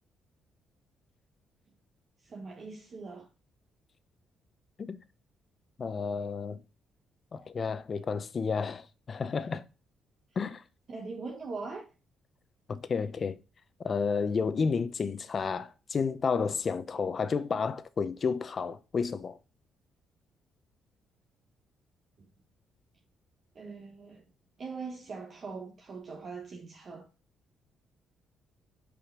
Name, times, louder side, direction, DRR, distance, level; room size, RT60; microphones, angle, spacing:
voice 1, 2.2-3.3 10.9-11.8 16.9-17.1 22.2-22.3 23.5-24.2 24.6-27.1, right 4 dB, 45° right, 1.2 m, -41 dB
voice 2, 5.8-6.6 7.3-9.6 10.4-10.6 12.7-13.4 13.8-19.4, left 5 dB, 45° left, 0.7 m, -31 dB
5.8 x 5.1 x 3.7 m
cardioid pair, 90°, 0 cm